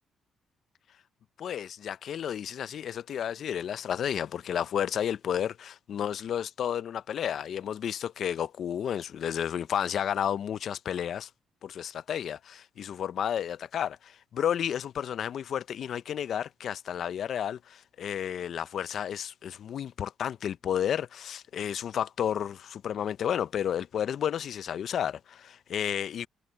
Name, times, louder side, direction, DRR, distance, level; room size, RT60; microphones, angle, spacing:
voice 1, 1.4-11.3 11.6-26.3, left 9 dB, 65° left, 0.5 m, -32 dB
cardioid pair, 90°, 0 cm